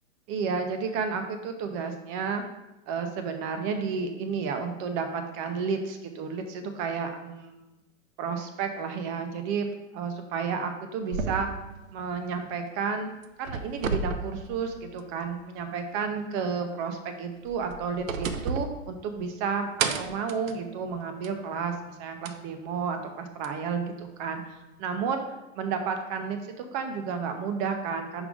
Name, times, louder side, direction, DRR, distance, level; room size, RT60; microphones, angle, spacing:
voice 1, 0.3-2.4 2.9-7.6 8.2-9.7 9.9-11.5 11.9-13.1 13.4-25.2 25.6-28.3, right 5 dB, 25° right, 6 dB, 0.6 m, -31 dB
sound 1, 11.1-12.9 13.2-15.3 15.6-15.7 17.3-19.4 19.8-21.5 22.3-22.4 23.4-23.5, right 5 dB, 80° right, 0.8 m, -33 dB
5.4 x 4.8 x 4.9 m, 0.98 s
hypercardioid pair, 145°, 40 cm